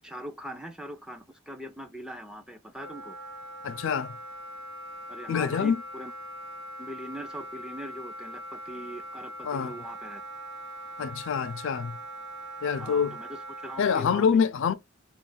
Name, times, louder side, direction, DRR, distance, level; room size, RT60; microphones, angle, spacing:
voice 1, 0.0-3.2 5.1-6.1 6.8-10.2 12.8-14.4, equal, 5° right, 0.3 m, -41 dB
Wind instrument woodwind instrument, 2.8-14.1, right 1 dB, 70° right, 0.8 m, -41 dB
voice 2, 3.6-4.2 5.3-5.8 9.4-9.8 11.0-12.0 12.6-13.2 13.8-14.7, left 6 dB, 65° left, 0.4 m, -26 dB
2.4 x 2.3 x 3.7 m
head